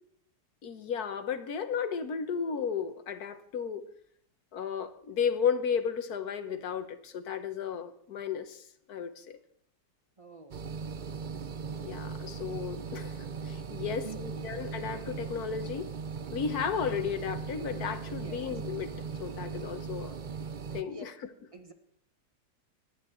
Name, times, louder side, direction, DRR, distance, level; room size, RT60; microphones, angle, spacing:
voice 1, 0.6-3.8 4.5-8.6 8.9-9.4 11.8-15.9 16.3-18.9 19.2-20.1 20.7-21.1, left 7 dB, 60° left, 10 dB, 1.6 m, -34 dB
voice 2, 10.2-11.2 13.8-14.4 18.1-18.4 20.9-21.1 21.5-21.7, right 3 dB, 20° right, 6 dB, 1.3 m, -48 dB
sound 1, 10.5-20.8, right 5 dB, 55° right, 0.5 m, -38 dB
25.0 x 10.5 x 4.5 m, 0.65 s
omnidirectional pair, 1.9 m